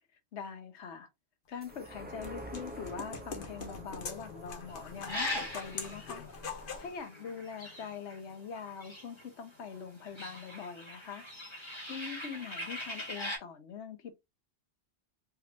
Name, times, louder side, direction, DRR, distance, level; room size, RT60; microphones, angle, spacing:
voice 1, 0.3-1.1 1.5-6.2 6.8-11.3 11.9-14.1, left 6 dB, 80° left, 1.1 m, -43 dB
sound 1, 1.6-8.4 8.8-8.9, right 1 dB, 10° right, 0.6 m, -49 dB
sound 2, 1.7-6.9, left 4 dB, 55° left, 1.0 m, -44 dB
sound 3, 4.7-9.5 9.7-13.4, left 1 dB, 25° left, 1.7 m, -41 dB
3.6 x 2.9 x 2.8 m
omnidirectional pair, 1.1 m